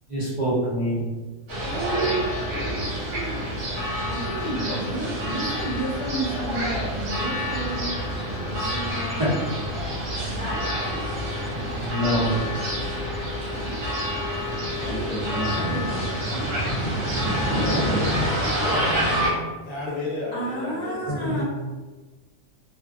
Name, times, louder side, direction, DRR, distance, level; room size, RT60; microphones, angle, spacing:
voice 1, 0.1-1.0 2.5-2.6 4.6-4.8 9.2-9.5 10.2-10.7 11.7-12.5 14.2-14.7 17.7-17.8, equal, 40° right, -11 dB, 0.5 m, -27 dB
sound 1, 1.5-19.3, equal, 65° right, 1.1 m, -27 dB
voice 2, 4.0-7.9 8.4-9.2 10.2-10.7 13.5-13.8 14.8-16.6 20.3-21.4, right 1 dB, 40° left, -7 dB, 0.7 m, -32 dB
voice 3, 14.9-16.0 16.7-18.3 21.1-21.4, equal, 70° left, -4 dB, 0.9 m, -28 dB
voice 4, 17.5-19.0 19.6-21.3, left 2 dB, 90° left, -5 dB, 0.4 m, -33 dB
2.5 x 2.2 x 2.3 m, 1.3 s
omnidirectional pair, 1.4 m